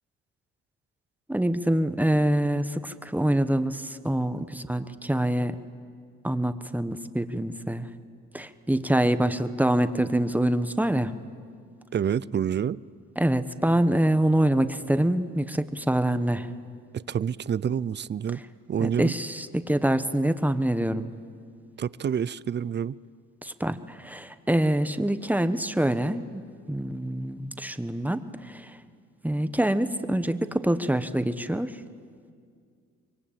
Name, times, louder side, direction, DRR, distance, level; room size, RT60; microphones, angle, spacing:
voice 1, 1.3-5.6 6.2-7.9 8.3-11.2 13.2-16.5 18.8-21.1 23.4-26.4 26.7-28.7 29.2-31.7, right 1 dB, 5° right, 11 dB, 1.2 m, -25 dB
voice 2, 11.9-12.8 16.9-18.4 18.7-19.1 21.8-23.0, right 8 dB, 35° right, 20 dB, 0.6 m, -28 dB
26.0 x 23.0 x 8.9 m, 2.2 s
cardioid pair, 90°, 30 cm